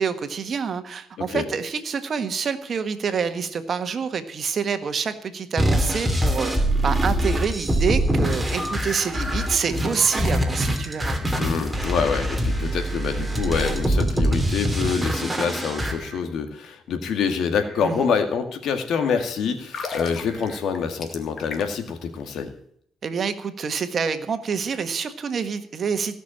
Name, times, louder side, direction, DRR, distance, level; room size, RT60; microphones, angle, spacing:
voice 1, 0.0-6.5 6.8-11.2 17.8-18.1 23.0-26.2, right 6 dB, 50° right, 9 dB, 1.5 m, -27 dB
sound 1, 5.6-15.9, right 1 dB, 10° right, 2.9 m, -24 dB
sound 2, 10.1-11.5 12.5-13.8 14.8-16.2 17.6-17.9 18.9-19.3 20.2-20.6, right 3 dB, 25° right, 3.7 m, -44 dB
voice 2, 11.4-22.5, left 6 dB, 75° left, 7 dB, 2.1 m, -26 dB
sound 3, 19.6-21.9 22.2-22.4, left 4 dB, 55° left, 2.2 m, -35 dB
17.0 x 6.2 x 8.7 m, 0.65 s
cardioid pair, 90°, 0 cm